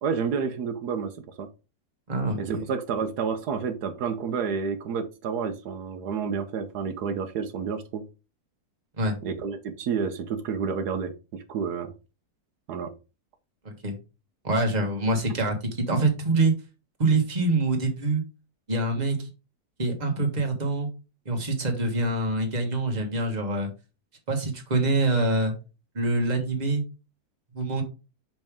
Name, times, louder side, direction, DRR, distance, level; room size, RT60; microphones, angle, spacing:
voice 1, 0.0-1.5 2.4-8.0 9.2-11.9 12.7-12.9, right 6 dB, 80° right, 8 dB, 1.3 m, -30 dB
voice 2, 2.1-2.6 9.0-9.2 13.6-13.9 14.4-16.5 17.0-18.2 18.7-19.3 19.8-20.9 21.2-23.7 24.3-25.5 25.9-26.8 27.5-27.8, right 2 dB, 30° right, 2 dB, 1.5 m, -25 dB
6.0 x 5.3 x 3.5 m, 0.30 s
omnidirectional pair, 1.7 m